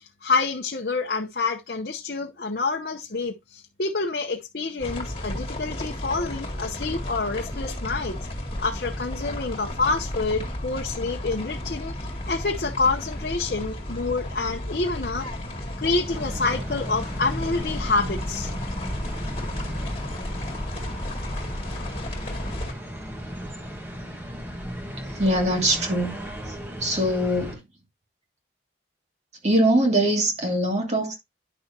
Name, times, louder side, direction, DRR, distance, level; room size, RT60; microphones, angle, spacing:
voice 1, 0.0-8.1 8.6-15.3 15.7-18.5, left 3 dB, 55° left, 0.9 m, -27 dB
sound 1, 4.8-22.7, left 1 dB, 30° left, 2.2 m, -33 dB
sound 2, 16.1-27.6, equal, 10° right, 1.6 m, -36 dB
voice 2, 25.1-26.1 26.5-26.6 26.8-27.6 29.4-31.2, right 1 dB, 35° right, 2.4 m, -22 dB
10.0 x 6.3 x 2.8 m
head